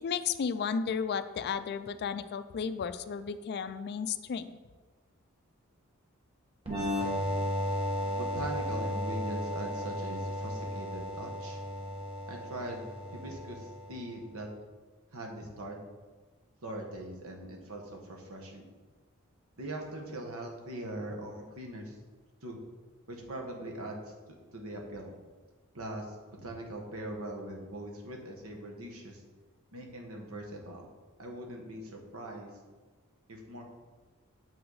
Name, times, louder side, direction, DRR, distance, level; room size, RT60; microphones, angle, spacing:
voice 1, 0.0-4.5, left 6 dB, 50° left, 12 dB, 0.3 m, -33 dB
sound 1, 6.7-14.1, left 1 dB, 25° right, 1.2 m, -34 dB
voice 2, 8.1-11.6 12.3-14.5 15.1-15.8 16.6-18.6 19.6-22.0 22.4-22.6 23.1-24.1 24.5-25.1 25.7-29.2 29.7-30.9 31.2-32.5 33.3-33.6, right 1 dB, 70° right, 1 dB, 1.3 m, -41 dB
7.1 x 5.8 x 4.0 m, 1.3 s
head